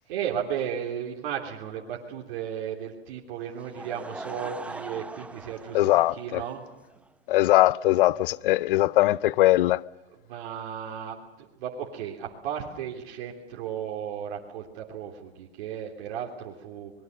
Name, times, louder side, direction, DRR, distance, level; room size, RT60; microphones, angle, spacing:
voice 1, 0.1-6.6 10.2-16.9, right 9 dB, 55° right, 3.3 m, -35 dB
Laughter / Crowd, 3.5-7.1, right 2 dB, 5° right, 0.7 m, -41 dB
voice 2, 5.7-6.4 7.3-9.8, left 16 dB, 55° left, 0.7 m, -21 dB
25.5 x 21.0 x 6.6 m
hypercardioid pair, 120°, 32 cm